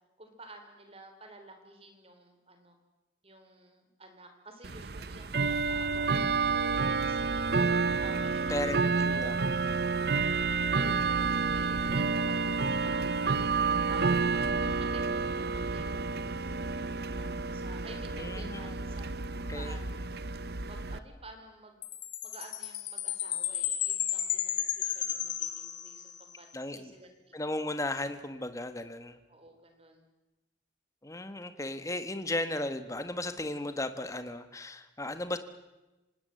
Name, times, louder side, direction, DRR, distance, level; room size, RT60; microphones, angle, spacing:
voice 1, 0.2-2.8 3.2-7.4 8.0-9.3 9.6-14.2 14.6-19.1 19.4-21.9 22.2-27.1 27.4-27.6 29.3-30.0, right 2 dB, 30° right, 5 dB, 3.7 m, -52 dB
Bell / Tick-tock, 4.6-21.0, right 4 dB, 60° right, 0.8 m, -30 dB
voice 2, 8.5-9.4 18.2-18.7 19.5-19.8 26.5-26.9 27.3-29.2 31.0-35.4, left 1 dB, 15° left, 10 dB, 1.3 m, -35 dB
Chime, 21.8-26.3, left 11 dB, 85° left, 2.3 m, -33 dB
25.5 x 18.5 x 7.7 m, 1.1 s
head